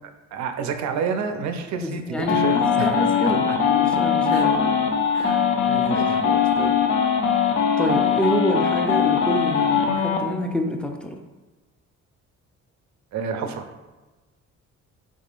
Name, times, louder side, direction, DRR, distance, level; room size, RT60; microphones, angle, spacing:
voice 1, 0.3-2.9 3.2-3.6 4.3-4.5 5.1-6.3 13.1-13.6, right 6 dB, 65° right, 7 dB, 0.5 m, -30 dB
voice 2, 1.8-4.9 5.9-6.8 7.8-11.2, equal, 5° left, 3 dB, 0.3 m, -27 dB
sound 1, 2.2-10.2, left 7 dB, 70° left, 0.6 m, -21 dB
3.6 x 3.6 x 2.4 m, 1.2 s
cardioid pair, 90°, 30 cm